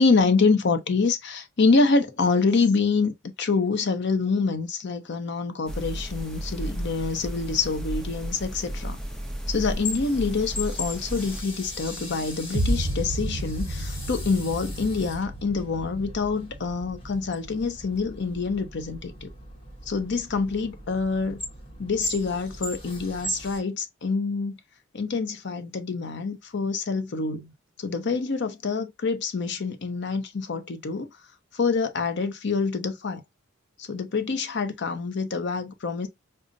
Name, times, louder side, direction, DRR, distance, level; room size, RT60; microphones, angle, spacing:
voice 1, 0.0-3.1 3.4-9.0 9.5-19.3 19.9-21.4 21.8-24.6 24.9-27.5 27.8-31.1 31.5-33.2 33.8-36.1, left 4 dB, 55° left, 0.6 m, -26 dB
sound 1, 5.7-11.4, right 1 dB, 5° left, 0.5 m, -34 dB
Hose Sounds, 9.5-23.6, left 1 dB, 25° left, 0.9 m, -38 dB
sound 2, 12.5-18.5, right 1 dB, 55° right, 0.7 m, -32 dB
5.1 x 2.0 x 2.5 m
head